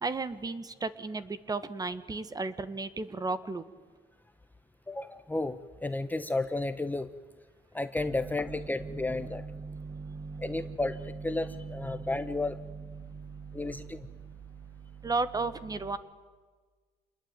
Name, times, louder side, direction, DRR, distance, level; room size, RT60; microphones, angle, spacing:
voice 1, 0.0-3.6 8.0-14.3 15.0-16.0, right 3 dB, 20° right, 13 dB, 1.6 m, -36 dB
voice 2, 4.9-7.1 7.7-9.5 10.4-12.6 13.5-14.1, left 2 dB, 10° left, 10 dB, 1.0 m, -32 dB
27.5 x 21.0 x 9.2 m, 1.4 s
cardioid pair, 110°, 17 cm